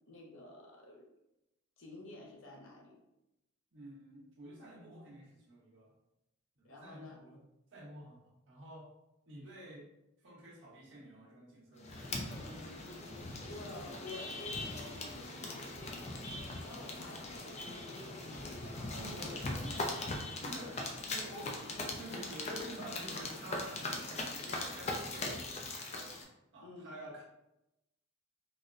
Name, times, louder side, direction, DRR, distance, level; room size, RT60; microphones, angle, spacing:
voice 1, 0.1-1.1 1.8-3.0 6.6-7.2 13.5-19.3 20.5-20.8 26.6-26.9, left 2 dB, 70° left, 0 dB, 0.7 m, -51 dB
voice 2, 3.7-5.9 6.6-7.4 7.7-8.2 8.5-8.9 9.3-9.9 10.2-12.4 18.9-20.1 20.4-20.8 21.1-23.8 24.1-26.1 26.5-27.2, right 1 dB, 60° right, -5 dB, 1.0 m, -50 dB
sound 1, 11.8-26.2, left 2 dB, 30° left, 0.4 m, -40 dB
4.0 x 2.1 x 2.5 m, 0.91 s
head